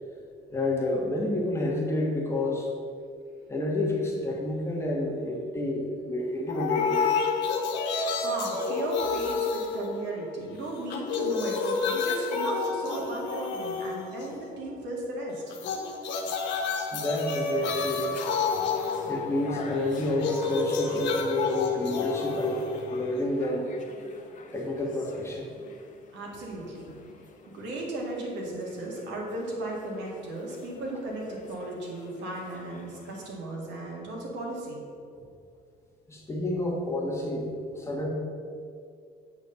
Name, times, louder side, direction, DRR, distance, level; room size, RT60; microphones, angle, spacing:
voice 1, 0.5-2.7 3.5-7.0 16.9-18.2 19.1-22.6 22.9-23.7 24.5-25.5 35.1-35.2 36.1-37.5 37.7-38.1, left 2 dB, 15° left, -2 dB, 1.6 m, -29 dB
sound 1, 6.5-10.5 10.8-14.5 15.5-23.5, left 4 dB, 85° left, 1.1 m, -30 dB
voice 2, 8.2-15.5 26.1-26.9 27.5-34.8, right 1 dB, 85° right, -2 dB, 2.2 m, -36 dB
sound 2, 17.1-33.4, left 3 dB, 45° left, 1.0 m, -48 dB
8.0 x 4.2 x 6.9 m, 2.3 s
cardioid pair, 125°, 18 cm